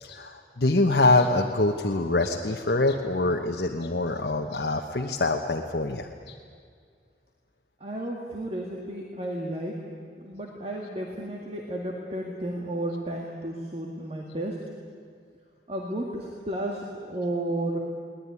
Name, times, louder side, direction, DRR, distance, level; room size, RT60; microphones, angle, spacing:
voice 1, 0.0-6.4, left 2 dB, 60° left, 2 dB, 1.1 m, -25 dB
voice 2, 7.8-9.8 10.2-14.6 15.7-17.8, right 1 dB, 35° right, 0 dB, 2.1 m, -32 dB
21.5 x 19.0 x 9.7 m, 2.1 s
head